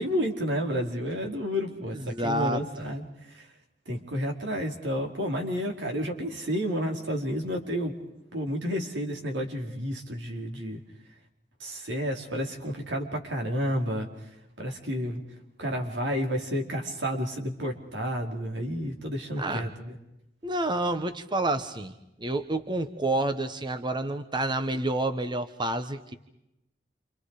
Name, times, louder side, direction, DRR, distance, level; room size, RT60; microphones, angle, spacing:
voice 1, 0.0-3.4 3.9-8.0 8.3-10.8 11.6-14.1 14.6-15.2 15.6-20.0, equal, 90° right, 2 dB, 4.9 m, -31 dB
voice 2, 2.1-2.6 19.4-19.7 20.4-21.9 22.2-26.1, right 2 dB, 25° right, 9 dB, 1.2 m, -29 dB
29.5 x 27.5 x 5.0 m, 0.86 s
head